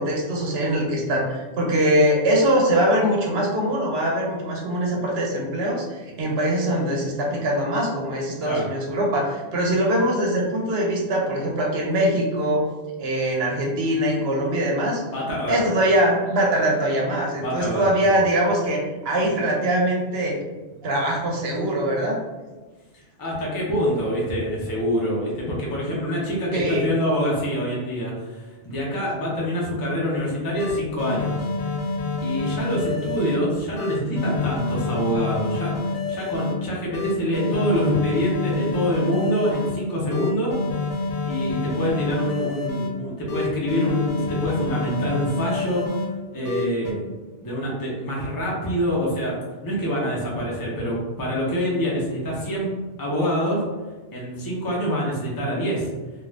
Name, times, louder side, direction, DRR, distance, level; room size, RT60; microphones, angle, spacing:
voice 1, 0.0-12.6 13.0-15.0 15.5-20.4 20.8-22.2 26.5-26.8, right 1 dB, 65° right, -2 dB, 0.8 m, -22 dB
voice 2, 15.1-15.6 17.4-18.2 23.2-31.5 32.2-40.6 41.2-46.0 46.3-47.0 47.4-49.4 49.6-52.7 53.0-53.6 54.1-55.9, equal, 25° left, -5 dB, 0.6 m, -25 dB
sound 1, 30.2-30.3 30.6-33.4 33.8-36.5 36.9-39.7 40.1-42.9 43.3-46.1 46.4-46.9, left 3 dB, 85° left, 0.9 m, -28 dB
2.5 x 2.4 x 3.2 m, 1.2 s
omnidirectional pair, 1.2 m